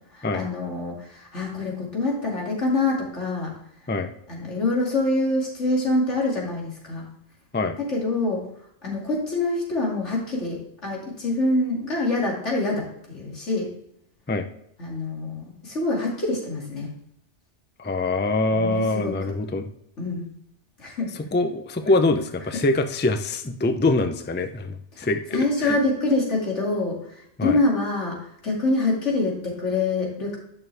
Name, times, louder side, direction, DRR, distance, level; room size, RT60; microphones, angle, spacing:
voice 1, 0.1-3.5 4.3-7.1 7.9-8.4 8.8-13.7 14.8-16.9 18.5-19.3 20.0-20.3 20.8-21.1 22.5-22.6 24.9-30.4, left 2 dB, 80° left, -2 dB, 2.9 m, -26 dB
voice 2, 17.8-19.7 21.3-25.8 27.4-27.6, left 2 dB, 15° left, 8 dB, 0.4 m, -24 dB
11.0 x 6.3 x 3.4 m, 0.73 s
omnidirectional pair, 1.2 m